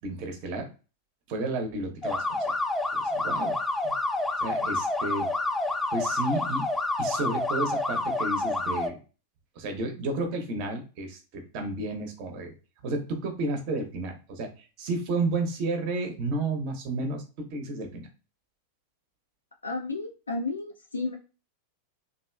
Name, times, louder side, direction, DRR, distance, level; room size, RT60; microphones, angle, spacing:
voice 1, 0.0-0.7 1.3-2.5 2.9-3.5 3.8-3.9 4.4-5.3 5.9-6.7 7.0-9.0 9.6-12.5 12.8-18.1, right 2 dB, 45° right, 5 dB, 0.8 m, -32 dB
sound 1, 2.0-8.9, left 2 dB, 10° left, 0.4 m, -28 dB
voice 2, 19.6-21.2, left 3 dB, 75° left, 1 dB, 0.4 m, -32 dB
2.9 x 2.5 x 2.3 m, 0.34 s
figure-of-eight pair, 90°, 0 cm